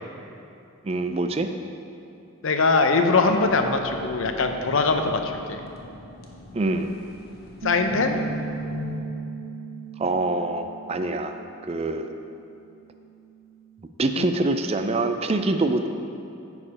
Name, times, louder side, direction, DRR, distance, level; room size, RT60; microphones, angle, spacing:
voice 1, 0.8-1.5 6.5-6.9 10.0-11.4 11.6-12.1 14.0-15.9, right 2 dB, 30° right, 7 dB, 0.4 m, -25 dB
voice 2, 2.4-5.6 7.6-8.2 14.2-14.3, left 3 dB, 70° left, 6 dB, 0.6 m, -22 dB
sound 1, 3.1-9.0, left 3 dB, 45° left, 0.9 m, -39 dB
Bass guitar, 7.6-13.9, right 8 dB, 85° right, 0.6 m, -39 dB
9.8 x 4.9 x 4.9 m, 2.7 s
head